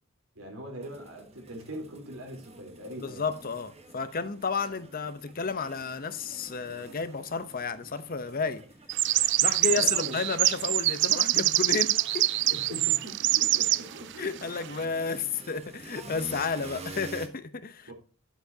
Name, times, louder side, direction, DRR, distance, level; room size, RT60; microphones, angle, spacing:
voice 1, 0.4-3.3 9.7-10.2 12.5-14.5 17.9-18.0, equal, 85° right, 3.7 m, -42 dB
sound 1, 0.8-17.3, right 2 dB, 30° right, 1.3 m, -48 dB
voice 2, 3.0-8.6 9.4-12.3 14.2-17.9, left 4 dB, 45° left, 0.8 m, -32 dB
sound 2, 8.9-13.8, right 16 dB, 55° right, 0.4 m, -25 dB
10.5 x 8.2 x 2.8 m
head